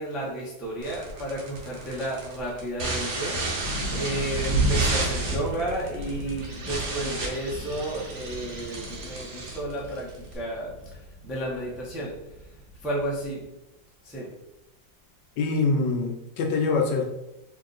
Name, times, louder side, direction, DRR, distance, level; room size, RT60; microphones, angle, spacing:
voice 1, 0.0-12.2 12.8-13.5 14.0-14.3, right 1 dB, ahead, -5 dB, 0.3 m, -32 dB
sound 1, 0.8-10.4, right 2 dB, 85° right, 1.7 m, -33 dB
sound 2, 3.6-13.2, right 2 dB, 55° right, 1.7 m, -33 dB
voice 2, 15.4-17.1, left 4 dB, 75° left, 1 dB, 1.2 m, -24 dB
3.6 x 2.8 x 3.8 m, 0.92 s
omnidirectional pair, 2.0 m